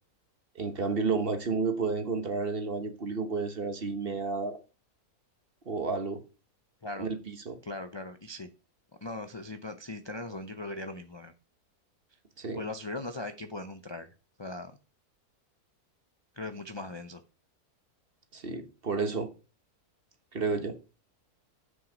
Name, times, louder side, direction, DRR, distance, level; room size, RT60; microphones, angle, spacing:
voice 1, 0.5-4.6 5.7-6.2 7.0-7.6 12.4-12.6 18.3-19.3 20.3-20.8, right 4 dB, 40° right, 1.3 m, -31 dB
voice 2, 7.6-8.5 9.0-11.3 12.5-14.1 14.4-14.7 16.4-17.2, left 2 dB, 40° left, 0.3 m, -39 dB
7.8 x 6.4 x 5.0 m
omnidirectional pair, 1.6 m